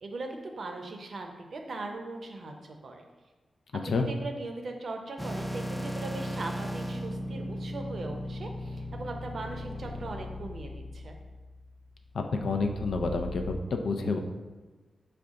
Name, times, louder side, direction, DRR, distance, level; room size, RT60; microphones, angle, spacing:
voice 1, 0.0-3.0 4.1-11.1, right 2 dB, 65° right, 3 dB, 0.5 m, -39 dB
sound 1, 5.2-13.6, equal, ahead, 0.4 m, -37 dB
voice 2, 12.1-14.2, left 3 dB, 75° left, 4 dB, 0.4 m, -29 dB
4.9 x 2.3 x 3.6 m, 1.3 s
cardioid pair, 75°, 0 cm